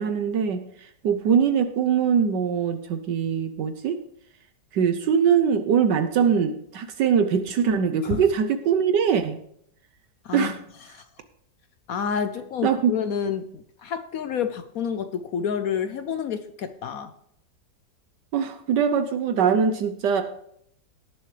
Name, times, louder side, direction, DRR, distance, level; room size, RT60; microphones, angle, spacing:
voice 1, 0.0-4.0 4.7-9.4 10.3-10.5 12.6-12.9 18.3-20.2, right 7 dB, 70° right, 9 dB, 1.3 m, -22 dB
voice 2, 10.2-10.6 10.9-11.0 11.9-17.1, left 7 dB, 65° left, 10 dB, 0.9 m, -29 dB
18.0 x 7.4 x 3.3 m, 0.69 s
omnidirectional pair, 2.0 m